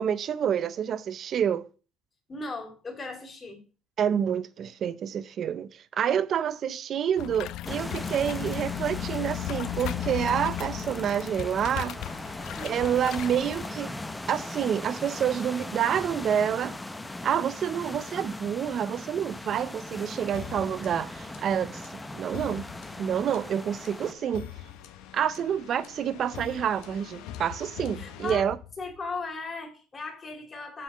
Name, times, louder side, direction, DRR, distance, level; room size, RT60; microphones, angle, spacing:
voice 1, 0.0-1.7 4.0-12.0 12.6-13.9 14.3-16.8 17.2-22.7 23.0-24.5 25.1-28.6, right 8 dB, 45° right, 0.6 m, -28 dB
voice 2, 2.3-3.6 12.5-12.9 28.0-28.4 28.8-30.8, left 3 dB, 25° left, 2.6 m, -37 dB
sound 1, 7.2-13.7, left 14 dB, 65° left, 0.3 m, -36 dB
sound 2, 7.6-24.1, left 2 dB, 10° left, 0.6 m, -39 dB
sound 3, 20.3-29.2, left 10 dB, 85° left, 1.0 m, -44 dB
7.5 x 4.0 x 6.5 m
cardioid pair, 120°, 0 cm